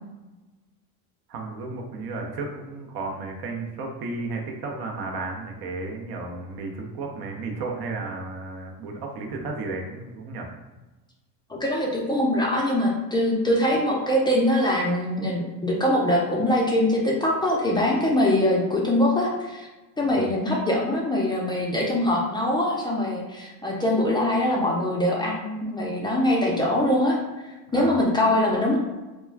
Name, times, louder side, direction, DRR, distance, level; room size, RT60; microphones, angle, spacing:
voice 1, 1.3-10.5 20.0-20.3 27.7-28.0, right 3 dB, 50° right, 1 dB, 0.7 m, -33 dB
voice 2, 11.5-19.7 20.0-27.2 27.4-28.8, left 1 dB, 10° left, -3 dB, 0.5 m, -23 dB
2.3 x 2.2 x 3.3 m, 1.1 s
supercardioid pair, 90°, 47 cm